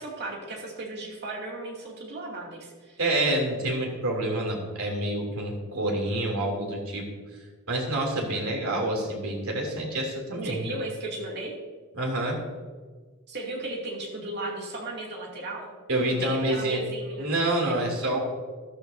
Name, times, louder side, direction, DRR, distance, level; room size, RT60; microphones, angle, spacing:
voice 1, 0.0-3.0 10.4-11.5 13.3-15.7 16.0-17.3 17.6-17.8, right 2 dB, 50° right, -2 dB, 2.6 m, -36 dB
voice 2, 3.0-7.0 7.7-10.6 12.0-12.4 15.9-16.8 17.2-18.2, right 1 dB, 80° right, 0 dB, 2.9 m, -27 dB
13.0 x 12.5 x 2.7 m, 1.4 s
head